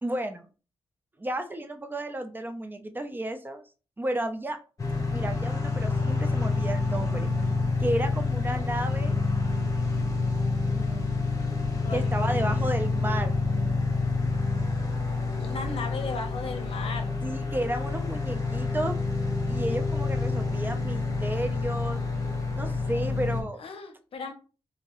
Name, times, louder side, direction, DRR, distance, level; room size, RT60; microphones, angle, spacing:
voice 1, 0.0-0.4 1.2-3.6 4.0-4.6 5.1-7.3 7.8-9.2 10.6-11.1 11.9-13.4 17.2-19.0 19.5-22.0 22.6-23.6, right 1 dB, 20° right, 7 dB, 0.4 m, -32 dB
sound 1, 4.8-23.4, left 3 dB, 35° left, 0.9 m, -28 dB
voice 2, 11.8-12.6 15.4-17.1 23.6-24.3, left 4 dB, 70° left, 6 dB, 0.6 m, -37 dB
2.8 x 2.7 x 2.9 m, 0.35 s
cardioid pair, 80°, 10 cm